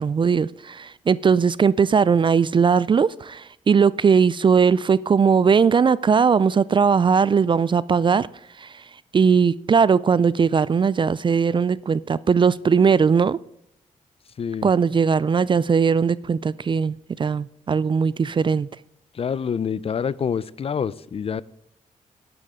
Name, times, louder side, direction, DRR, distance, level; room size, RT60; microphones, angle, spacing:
voice 1, 0.0-8.3 8.6-8.8 9.1-13.4 14.6-18.7, right 6 dB, 35° right, 20 dB, 0.3 m, -19 dB
voice 2, 14.4-14.7 19.1-21.4, left 7 dB, 45° left, 20 dB, 0.5 m, -26 dB
12.0 x 11.0 x 3.7 m, 0.81 s
cardioid pair, 70°, 14 cm